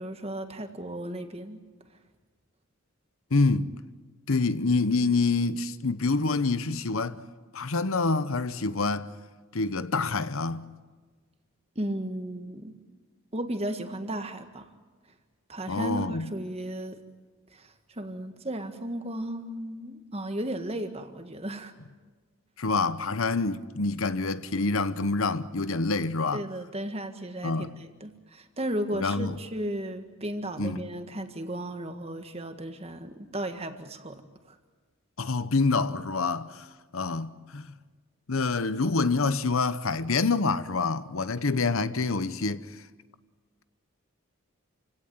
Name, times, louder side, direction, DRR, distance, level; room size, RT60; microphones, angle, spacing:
voice 1, 0.0-1.6 11.8-12.7 13.3-14.7 15.5-17.0 17.5-21.7 26.3-34.6, right 1 dB, 30° right, 1.7 m, -35 dB
voice 2, 3.3-3.7 4.3-7.2 7.5-9.1 9.5-10.7 15.7-16.3 22.6-26.4 27.4-27.7 28.9-29.4 30.6-30.9 35.2-36.7 36.9-37.7 38.3-42.8, left 3 dB, 75° left, 0.9 m, -27 dB
28.0 x 17.0 x 9.3 m
head